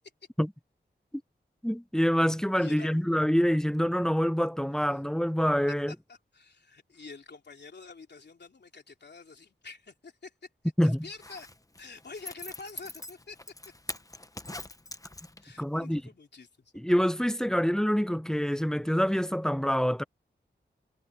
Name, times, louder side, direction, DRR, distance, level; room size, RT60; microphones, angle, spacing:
voice 1, 1.6-5.9 10.8-11.0 15.6-16.0 16.8-20.0, equal, 5° left, 0.6 m, -26 dB
voice 2, 2.5-3.0 4.8-5.0 5.9-10.5 10.8-11.5 11.8-13.7 15.4-16.7, left 4 dB, 65° left, 3.1 m, -47 dB
Zipper (clothing), 11.0-15.6 16.0-16.1, left 2 dB, 20° left, 1.0 m, -43 dB
wide cardioid pair, 75°, 19 cm